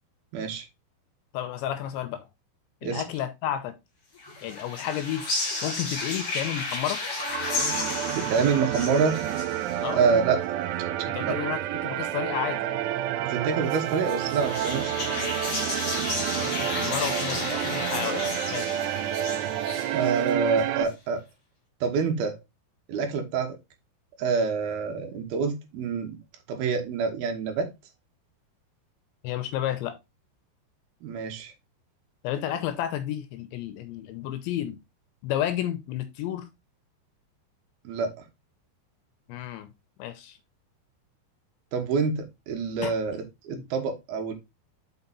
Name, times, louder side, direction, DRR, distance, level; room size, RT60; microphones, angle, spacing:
voice 1, 0.3-0.7 2.8-3.0 8.1-9.2 9.9-10.4 11.2-11.4 13.2-15.3 19.9-21.2 21.8-22.4 22.9-23.6 24.2-26.2 26.5-27.7 31.0-31.5 37.8-38.2 41.7-44.3, right 5 dB, 65° right, 4 dB, 2.8 m, -27 dB
voice 2, 1.3-2.3 2.8-3.7 4.4-5.2 5.6-7.0 9.8-10.0 11.1-12.6 16.2-18.8 29.2-29.9 32.2-34.8 35.2-36.5 39.3-39.7 40.0-40.4 42.8-42.9 43.5-43.7, left 11 dB, 85° left, 9 dB, 2.9 m, -31 dB
sound 1, 4.2-10.2 13.7-20.6, left 3 dB, 35° left, 2.9 m, -33 dB
sound 2, 7.1-20.8, right 12 dB, 90° right, 3.2 m, -29 dB
5.9 x 5.9 x 4.0 m, 0.23 s
omnidirectional pair, 5.5 m